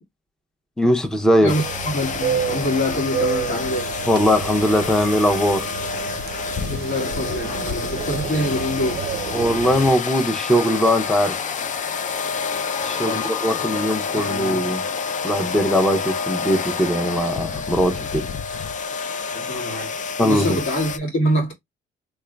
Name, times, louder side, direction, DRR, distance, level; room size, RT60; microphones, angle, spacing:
voice 1, 0.8-1.5 4.1-5.7 9.3-11.4 12.8-14.8 15.2-18.3 20.2-20.6, equal, 5° left, 0.7 m, -20 dB
voice 2, 1.4-3.9 6.7-9.0 13.0-13.2 13.5-13.8 14.1-14.7 19.3-21.5, left 1 dB, 75° left, 2.1 m, -25 dB
sound 1, 1.5-21.0, left 5 dB, 40° left, 0.4 m, -28 dB
sound 2, 1.5-9.9, right 8 dB, 55° right, 0.5 m, -30 dB
3.5 x 3.3 x 2.3 m
cardioid pair, 90°, 20 cm